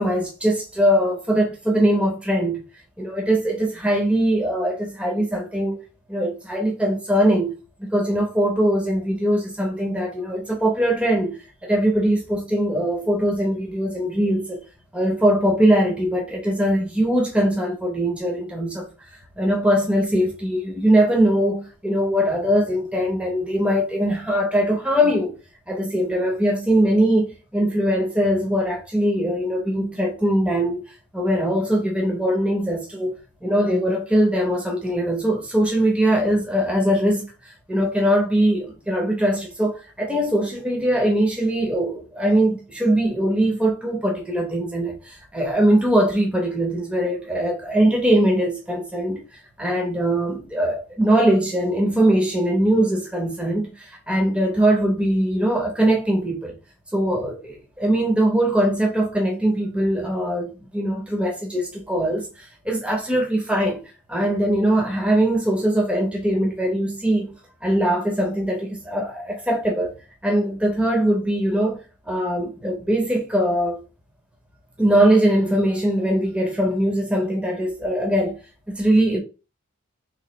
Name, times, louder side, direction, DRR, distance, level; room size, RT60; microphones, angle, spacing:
voice 1, 0.0-2.6 3.0-5.8 6.1-7.5 7.8-14.6 14.9-18.9 19.4-25.3 25.7-33.1 33.4-49.2 49.6-56.5 56.9-63.8 64.1-67.3 67.6-69.9 70.2-71.8 72.1-73.8 74.8-78.4 78.7-79.2, right 1 dB, 5° right, 0.8 m, -21 dB
3.1 x 2.5 x 3.9 m
head